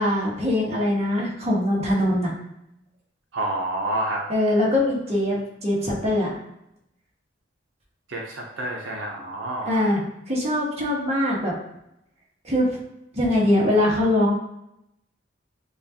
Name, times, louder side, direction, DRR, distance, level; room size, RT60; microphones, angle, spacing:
voice 1, 0.0-2.3 4.3-6.4 9.7-10.0 10.3-11.5 12.4-12.7 13.1-14.3, left 1 dB, 35° right, -3 dB, 1.2 m, -22 dB
voice 2, 3.3-4.2 8.1-10.0, right 1 dB, 75° right, -1 dB, 0.7 m, -29 dB
6.6 x 2.4 x 2.8 m, 0.81 s
head